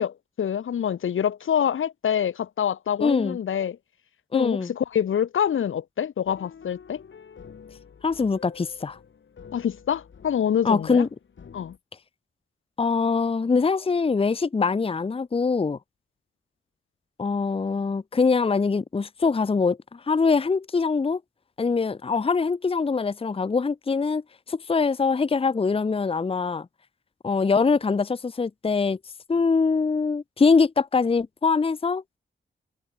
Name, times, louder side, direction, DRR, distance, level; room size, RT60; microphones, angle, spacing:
voice 1, 0.0-3.8 4.3-7.0 9.5-11.0 11.5-11.7, left 8 dB, 85° left, 1.2 m, -26 dB
voice 2, 3.0-3.4 4.3-4.7 8.0-9.0 10.6-11.1 12.8-15.8 17.2-21.2 21.6-24.2 24.5-26.7 27.2-29.0 29.3-32.0, left 4 dB, 30° left, 0.6 m, -23 dB
sound 1, 6.3-11.8, left 6 dB, 70° left, 2.8 m, -48 dB
cardioid pair, 75°, 20 cm